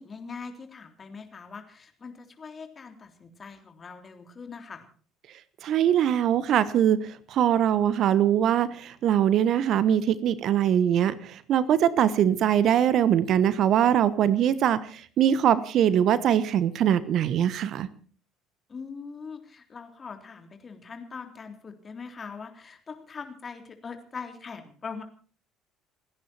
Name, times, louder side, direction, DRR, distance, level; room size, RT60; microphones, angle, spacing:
voice 1, 0.0-4.9 18.7-25.0, left 5 dB, 35° left, 6 dB, 3.6 m, -42 dB
voice 2, 5.6-17.9, right 10 dB, 55° right, 17 dB, 1.1 m, -22 dB
30.0 x 10.5 x 4.4 m, 0.42 s
hypercardioid pair, 60°, 0 cm